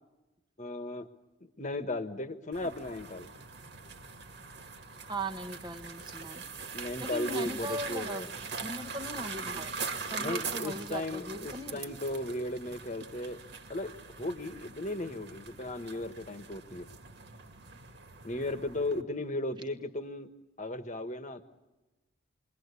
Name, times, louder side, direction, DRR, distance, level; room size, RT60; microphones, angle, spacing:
voice 1, 0.6-1.1 1.4-3.3 6.7-8.3 10.2-13.4 13.7-13.9 14.2-16.9 18.2-20.3 20.6-21.4, left 1 dB, 35° left, 9 dB, 1.4 m, -36 dB
sound 1, 2.5-19.0, right 5 dB, 55° right, 2.1 m, -42 dB
voice 2, 5.0-6.4 7.0-9.7 10.1-11.9, right 1 dB, 20° right, 5 dB, 1.4 m, -39 dB
28.5 x 22.0 x 8.4 m, 1.1 s
head